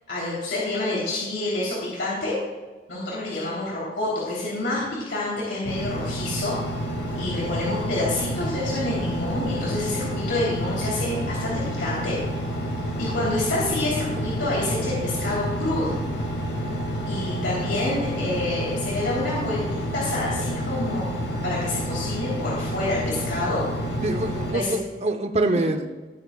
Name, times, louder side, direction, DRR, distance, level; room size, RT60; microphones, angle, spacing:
voice 1, 0.1-2.3 2.9-6.5 7.1-12.2 13.0-16.0 17.0-19.6 19.9-23.6 24.5-24.7 25.5-25.7, left 2 dB, 90° left, -6 dB, 3.3 m, -28 dB
Engine, 5.6-24.5, equal, 70° left, 1.9 m, -29 dB
voice 2, 24.0-25.9, right 2 dB, 35° right, 7 dB, 0.8 m, -25 dB
18.5 x 8.2 x 2.4 m, 1.3 s
head